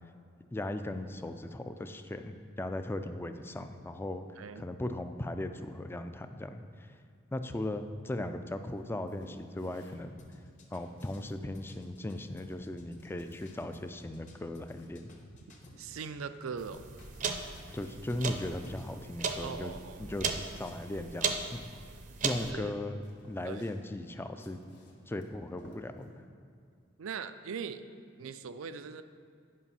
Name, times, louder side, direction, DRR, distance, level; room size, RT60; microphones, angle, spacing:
voice 1, 0.5-4.2 4.6-6.9 7.3-10.1 10.7-15.1 17.7-19.7 20.0-20.3 20.6-21.6 22.2-23.0 23.3-24.7 25.1-26.1, left 1 dB, 10° left, 8 dB, 0.3 m, -37 dB
voice 2, 4.4-4.7 15.8-16.8 19.4-20.1 22.5-22.7 23.4-23.6 27.0-27.8 28.2-29.0, right 6 dB, 90° right, 11 dB, 0.4 m, -40 dB
sound 1, 8.7-26.2, equal, 60° left, 1.3 m, -59 dB
sound 2, 10.2-16.1 16.5-18.9, left 1 dB, 40° left, 1.0 m, -55 dB
sound 3, 16.6-22.5, right 5 dB, 40° right, 0.6 m, -37 dB
9.7 x 5.2 x 5.6 m, 2.3 s
head